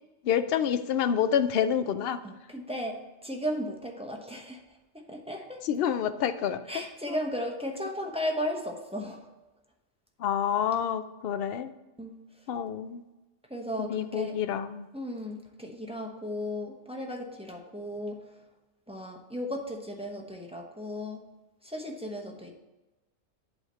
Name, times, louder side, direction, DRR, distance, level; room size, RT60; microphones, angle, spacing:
voice 1, 0.2-2.2 5.6-7.2 10.2-11.7 12.5-13.0 13.8-14.9, left 8 dB, 60° left, 11 dB, 0.6 m, -28 dB
voice 2, 2.2-4.6 4.9-5.6 6.7-9.3 12.0-12.2 13.5-14.4 14.9-18.3 18.9-21.3 21.6-22.5, equal, 5° right, 1 dB, 0.7 m, -35 dB
8.1 x 3.6 x 6.6 m, 1.1 s
omnidirectional pair, 1.3 m